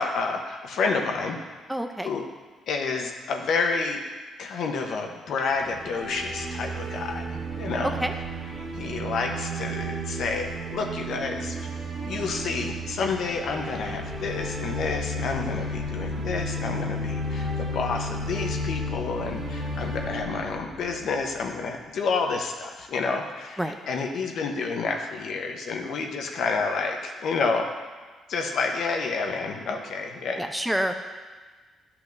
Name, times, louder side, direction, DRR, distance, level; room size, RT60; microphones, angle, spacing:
voice 1, 0.0-1.4 2.0-2.2 2.7-4.0 4.4-7.2 7.6-8.0 8.6-11.5 12.1-27.7 28.3-30.4, left 4 dB, 70° left, 2 dB, 0.9 m, -29 dB
voice 2, 1.7-2.1 7.8-8.1 23.6-23.7 30.4-30.9, equal, 5° right, 5 dB, 0.5 m, -27 dB
sound 1, 5.6-21.7, equal, 60° right, 1.7 m, -33 dB
11.0 x 5.8 x 2.6 m, 1.4 s
cardioid pair, 90°, 0 cm